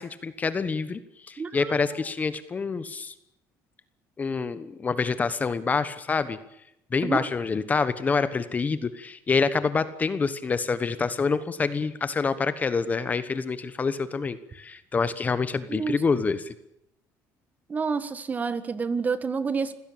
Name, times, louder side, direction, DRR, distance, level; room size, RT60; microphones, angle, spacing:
voice 1, 0.0-3.1 4.2-6.4 6.9-16.5, left 4 dB, 25° left, 13 dB, 1.2 m, -27 dB
voice 2, 1.4-2.0 7.0-7.3 15.7-16.0 17.7-19.7, right 5 dB, 25° right, 13 dB, 1.6 m, -29 dB
26.0 x 17.0 x 8.7 m, 0.80 s
cardioid pair, 130°, 7 cm